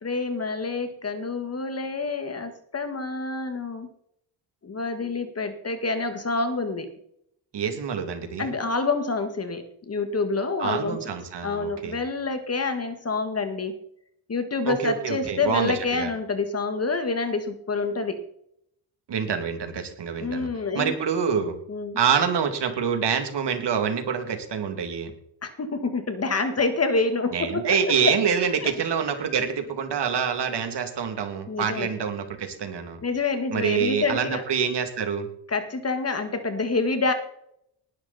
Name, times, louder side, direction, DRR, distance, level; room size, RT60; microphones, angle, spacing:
voice 1, 0.0-3.9 4.6-6.9 8.4-11.2 11.4-13.7 14.3-18.2 20.2-20.9 21.7-22.0 25.4-28.1 28.6-28.7 31.5-31.9 33.0-34.4 35.5-37.1, left 3 dB, 30° left, 8 dB, 1.9 m, -27 dB
voice 2, 7.5-8.5 10.6-12.0 14.6-16.1 19.1-20.5 20.7-21.5 22.0-25.1 27.3-33.0 33.5-35.3, right 7 dB, 55° right, 6 dB, 2.8 m, -26 dB
19.5 x 11.0 x 4.3 m, 0.72 s
cardioid pair, 130°, 48 cm